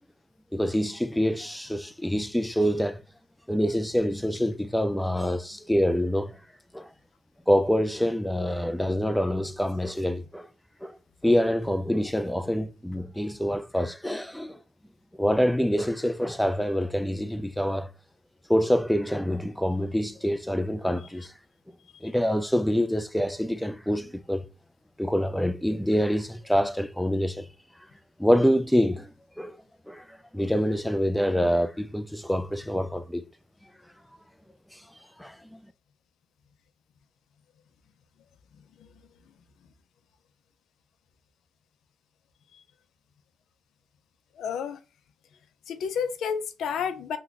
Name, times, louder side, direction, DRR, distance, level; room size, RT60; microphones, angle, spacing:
voice 1, 0.5-3.0 3.5-6.4 6.7-6.9 7.5-10.5 10.8-11.0 11.2-14.6 15.2-17.9 18.5-21.3 22.0-24.5 25.0-27.5 28.2-29.1 29.4-29.6 29.9-30.0 30.3-33.3 35.2-35.6, equal, 5° left, 0.4 m, -26 dB
voice 2, 44.4-44.8 45.7-47.2, left 7 dB, 80° left, 0.4 m, -30 dB
2.8 x 2.2 x 3.9 m
cardioid pair, 80°, 0 cm